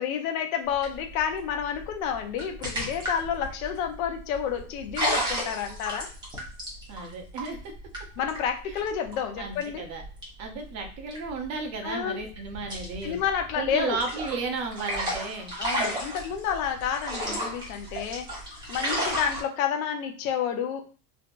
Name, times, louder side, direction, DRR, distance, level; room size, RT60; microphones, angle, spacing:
voice 1, 0.0-6.1 8.2-9.8 11.8-12.2 13.0-14.0 15.6-18.3 18.7-20.9, left 8 dB, 70° left, 4 dB, 0.9 m, -30 dB
sound 1, 0.6-11.9 12.2-19.4, equal, 10° right, 1.1 m, -33 dB
voice 2, 6.9-7.7 9.4-10.0 10.4-13.2 13.6-15.5, right 4 dB, 40° right, 3 dB, 0.8 m, -33 dB
3.4 x 2.8 x 2.5 m, 0.39 s
supercardioid pair, 140°, 44 cm